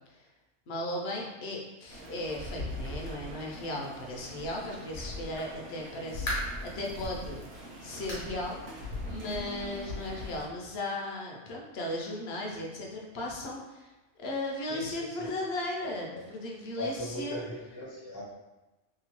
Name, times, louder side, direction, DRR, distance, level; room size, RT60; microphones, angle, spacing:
voice 1, 0.7-7.4 7.8-8.6 9.0-13.9 14.2-17.5, left 1 dB, 65° left, -1 dB, 0.8 m, -36 dB
sound 1, 1.9-10.5, left 1 dB, 55° right, 0.8 m, -41 dB
sound 2, 6.3-6.7 7.2-7.3 8.1-8.4 8.7-8.8 9.3-9.4 10.5-10.6, equal, 85° left, 1.2 m, -36 dB
voice 2, 14.7-15.3 16.1-16.2 16.8-18.2, left 2 dB, 30° left, -6 dB, 0.5 m, -38 dB
2.9 x 2.2 x 2.9 m, 1.0 s
omnidirectional pair, 1.2 m